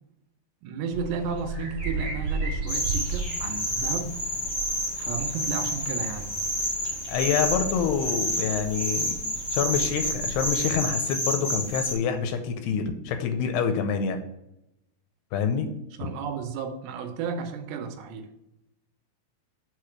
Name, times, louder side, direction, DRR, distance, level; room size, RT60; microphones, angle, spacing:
voice 1, 0.6-4.1 5.0-6.3 16.0-18.3, right 5 dB, 80° right, 7 dB, 2.9 m, -33 dB
sound 1, 0.9-10.9, right 3 dB, 40° right, 2.2 m, -35 dB
sound 2, 2.7-11.9, equal, 45° left, 0.6 m, -29 dB
voice 2, 7.1-9.1 9.5-14.2 15.3-15.7, left 7 dB, 80° left, 7 dB, 2.6 m, -26 dB
6.8 x 4.4 x 6.0 m, 0.85 s
omnidirectional pair, 4.9 m